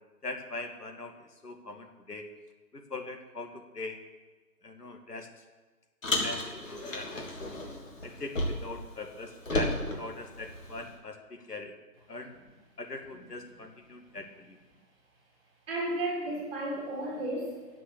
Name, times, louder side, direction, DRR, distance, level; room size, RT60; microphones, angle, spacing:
voice 1, 0.2-2.3 2.7-4.0 4.6-5.4 6.2-7.3 8.0-11.7 12.1-12.3 12.8-14.6, left 2 dB, 70° left, 4 dB, 2.4 m, -41 dB
Car, 6.0-8.8 9.1-10.9, left 1 dB, 50° left, 3.2 m, -33 dB
voice 2, 15.7-17.8, right 1 dB, 10° right, -5 dB, 3.8 m, -33 dB
13.5 x 7.7 x 8.6 m, 1.3 s
figure-of-eight pair, 155°, 49 cm